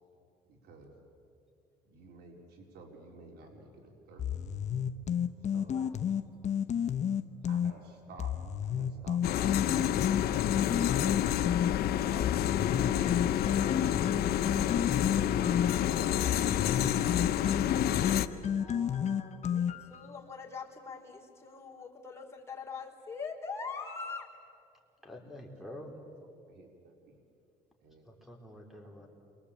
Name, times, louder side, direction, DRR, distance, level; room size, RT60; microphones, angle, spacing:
voice 1, 0.5-0.9 1.9-4.3 5.5-6.4 7.4-9.9 11.4-13.2 13.7-14.0 14.4-15.6 16.0-17.4 18.3-18.6 25.7-25.8 26.5-27.2 27.8-28.0 28.8-29.1, right 3 dB, 75° right, 1 dB, 4.1 m, -53 dB
sound 1, 4.2-7.7 8.2-11.7 12.2-20.0, left 8 dB, 45° left, 1.1 m, -31 dB
voice 2, 5.7-6.0 18.5-24.3, left 5 dB, 15° left, -1 dB, 4.5 m, -43 dB
sound 2, 9.2-18.3, left 11 dB, 70° left, 1.0 m, -29 dB
voice 3, 25.0-25.9 28.1-29.1, left 1 dB, ahead, 2 dB, 4.5 m, -47 dB
28.5 x 23.5 x 8.6 m, 2.5 s
cardioid pair, 120°, 17 cm